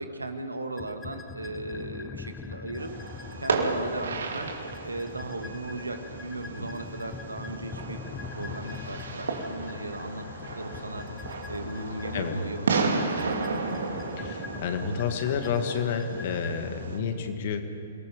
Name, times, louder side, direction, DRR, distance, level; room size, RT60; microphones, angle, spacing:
voice 1, 0.0-2.9 3.4-4.5 4.8-8.0 8.4-10.3 10.5-11.1 11.5-13.5, right 2 dB, 90° right, 6 dB, 1.8 m, -37 dB
sound 1, 0.8-16.6, left 5 dB, 15° left, 0.8 m, -43 dB
Fireworks, 2.8-17.0, right 4 dB, 70° right, 2.4 m, -34 dB
sound 2, 8.1-14.1, left 3 dB, 70° left, 3.7 m, -43 dB
voice 2, 14.2-17.6, left 6 dB, 50° left, 6 dB, 2.1 m, -30 dB
28.0 x 19.0 x 5.2 m, 2.6 s
figure-of-eight pair, 120°, 0 cm